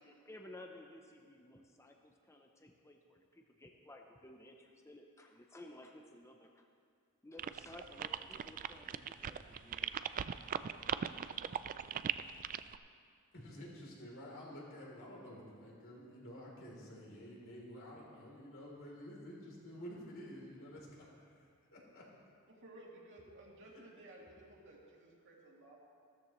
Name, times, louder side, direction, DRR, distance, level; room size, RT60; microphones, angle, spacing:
voice 1, 0.0-6.7 7.2-10.0, left 1 dB, 15° left, 3 dB, 0.6 m, -55 dB
sound 1, 7.4-12.8, right 8 dB, 40° right, 0.3 m, -39 dB
voice 2, 13.3-22.0, equal, 60° left, -3 dB, 3.2 m, -50 dB
voice 3, 22.5-25.8, right 1 dB, 60° right, -3 dB, 2.5 m, -56 dB
16.0 x 13.5 x 3.1 m, 2.2 s
head